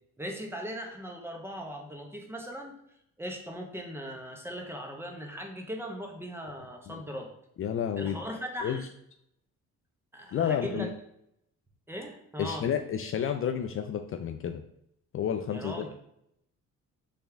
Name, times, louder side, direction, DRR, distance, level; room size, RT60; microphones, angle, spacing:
voice 1, 0.2-2.8 3.2-7.3 8.0-8.8 10.1-10.9 11.9-12.7 15.5-15.9, equal, 10° right, 2 dB, 0.9 m, -39 dB
voice 2, 7.6-8.2 8.6-8.8 10.3-10.9 12.4-14.6 15.1-15.9, left 8 dB, 45° left, 6 dB, 0.4 m, -30 dB
4.1 x 3.5 x 3.4 m, 0.75 s
cardioid pair, 90°, 30 cm